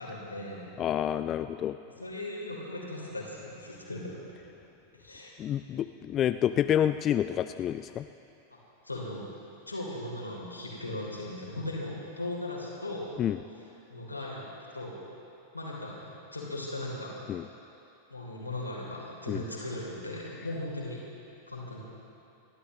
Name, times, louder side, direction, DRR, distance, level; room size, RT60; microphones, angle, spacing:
voice 1, 0.0-0.7 2.0-4.1 4.9-5.3 8.5-8.6 8.8-9.2 9.7-13.1 13.9-14.4 14.7-15.0 15.5-17.2 18.1-21.0 21.5-21.8, left 1 dB, 85° left, -4 dB, 3.6 m, -38 dB
voice 2, 0.8-1.8 5.4-8.1 13.2-13.4 17.3-17.4 19.3-19.4, left 10 dB, 30° left, 11 dB, 0.3 m, -28 dB
29.0 x 12.5 x 3.2 m, 2.7 s
figure-of-eight pair, 90°, 0 cm